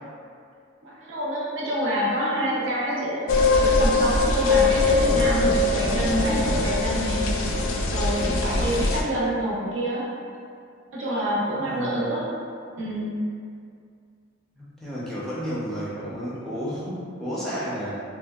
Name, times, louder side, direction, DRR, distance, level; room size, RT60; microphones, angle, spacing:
voice 1, 0.8-7.6 7.9-10.1 10.9-12.3 12.8-13.2, right 1 dB, 75° right, -6 dB, 0.6 m, -27 dB
sound 1, 3.3-9.0, left 2 dB, 80° left, 0.3 m, -22 dB
voice 2, 11.6-12.1 14.6-18.0, equal, ahead, -9 dB, 0.4 m, -32 dB
2.6 x 2.1 x 2.2 m, 2.3 s
head